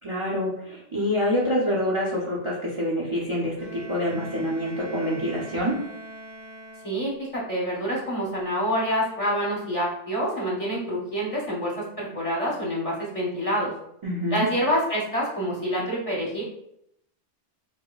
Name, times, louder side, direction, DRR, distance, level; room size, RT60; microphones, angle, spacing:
voice 1, 0.0-5.7 14.0-14.5, equal, 35° right, -5 dB, 0.5 m, -26 dB
Bowed string instrument, 3.6-7.3, right 1 dB, 80° right, 0.9 m, -42 dB
voice 2, 6.8-13.7 14.3-16.4, equal, 35° left, -5 dB, 0.8 m, -27 dB
5.0 x 2.1 x 2.3 m, 0.76 s
omnidirectional pair, 1.2 m